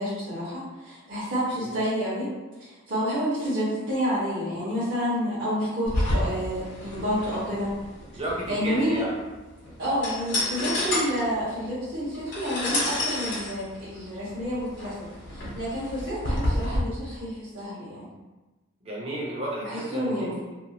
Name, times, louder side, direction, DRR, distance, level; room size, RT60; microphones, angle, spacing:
voice 1, 0.0-2.3 2.6-7.8 8.5-9.0 9.8-14.9 15.3-18.1 19.6-20.4, equal, 50° right, -12 dB, 1.0 m, -29 dB
sound 1, 5.9-16.8, left 1 dB, 60° left, 0.9 m, -30 dB
voice 2, 8.1-9.2 18.8-20.5, right 1 dB, 30° right, -5 dB, 0.7 m, -33 dB
2.7 x 2.3 x 2.8 m, 1.1 s
head